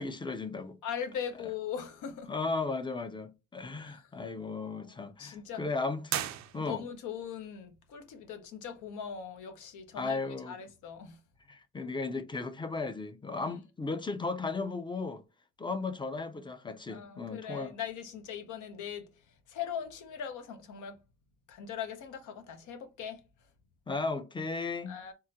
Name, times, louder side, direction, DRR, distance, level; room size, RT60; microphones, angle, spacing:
voice 1, 0.0-0.8 2.3-6.3 6.5-6.8 9.9-10.5 11.5-15.2 15.6-17.7 23.9-24.9, left 3 dB, 15° left, 0.4 m, -35 dB
voice 2, 0.8-2.3 3.8-4.2 4.6-5.6 6.6-11.2 13.5-13.6 16.9-21.0 21.5-23.5 24.9-25.1, left 8 dB, 80° left, 0.8 m, -40 dB
sound 1, 6.1-7.1, right 12 dB, 65° right, 0.5 m, -36 dB
3.7 x 2.1 x 2.8 m
cardioid pair, 90°, 30 cm